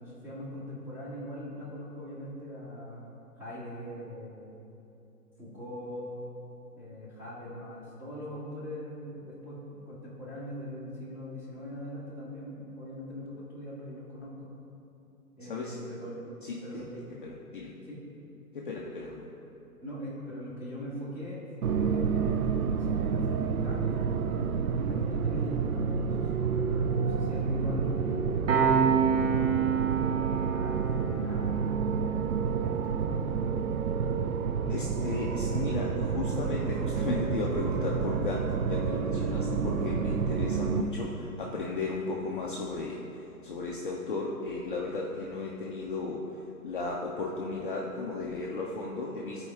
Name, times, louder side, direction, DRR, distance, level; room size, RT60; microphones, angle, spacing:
voice 1, 0.0-3.1 3.4-4.5 5.4-6.3 6.7-14.5 15.4-16.2 16.6-17.0 17.8-18.0 19.8-23.9 24.2-28.3 28.8-33.1 40.9-41.0, equal, 5° right, -9 dB, 1.6 m, -41 dB
voice 2, 16.4-16.8 17.2-17.7 18.5-19.3 34.7-41.1 41.4-43.0 43.4-46.2 46.6-49.5, left 3 dB, 35° left, -2 dB, 0.5 m, -35 dB
sound 1, 21.6-40.8, right 6 dB, 65° right, 0.6 m, -29 dB
Piano, 28.5-39.6, right 7 dB, 50° right, 1.4 m, -32 dB
13.0 x 4.6 x 3.4 m, 2.9 s
hypercardioid pair, 135°, 47 cm